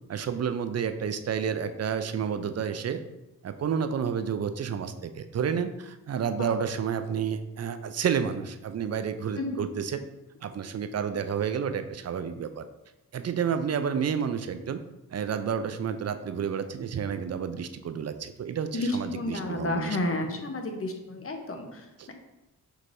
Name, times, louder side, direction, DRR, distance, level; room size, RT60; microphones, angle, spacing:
voice 1, 0.1-3.0 3.4-10.0 10.4-12.6 13.1-14.8 15.1-20.2 22.0-22.1, right 7 dB, 45° right, 9 dB, 0.5 m, -30 dB
voice 2, 18.7-21.8, left 2 dB, 40° left, 4 dB, 0.8 m, -31 dB
5.6 x 3.1 x 2.6 m, 0.94 s
cardioid pair, 50°, 36 cm